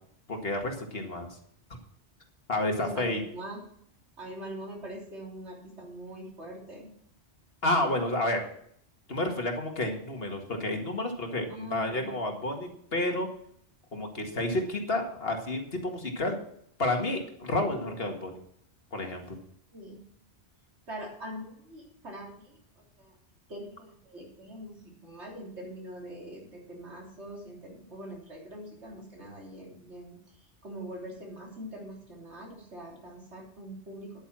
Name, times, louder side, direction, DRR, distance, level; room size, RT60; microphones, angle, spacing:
voice 1, 0.3-1.3 2.5-3.2 7.6-8.4 9.1-13.3 13.9-16.4 16.8-18.4 18.9-19.4, left 1 dB, 60° left, 3 dB, 2.1 m, -30 dB
voice 2, 2.8-3.6 4.2-6.9 11.5-12.1 19.7-20.0 20.9-23.2 23.5-34.2, right 1 dB, 75° right, -2 dB, 3.6 m, -43 dB
10.5 x 8.8 x 6.1 m, 0.68 s
omnidirectional pair, 1.2 m